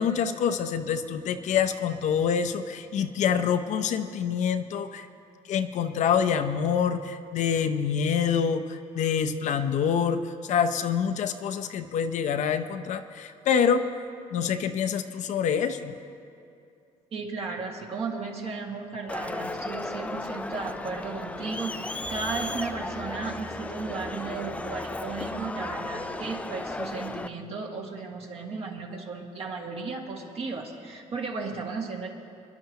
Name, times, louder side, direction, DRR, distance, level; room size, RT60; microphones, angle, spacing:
voice 1, 0.0-5.1 5.5-10.2 10.5-13.8 14.3-16.0, left 7 dB, 65° left, 9 dB, 0.7 m, -26 dB
voice 2, 17.1-32.1, right 4 dB, 50° right, 0 dB, 2.0 m, -35 dB
Crowd, 19.1-27.3, left 2 dB, 10° left, 0.4 m, -35 dB
25.0 x 11.0 x 2.9 m, 2.6 s
cardioid pair, 110°, 13 cm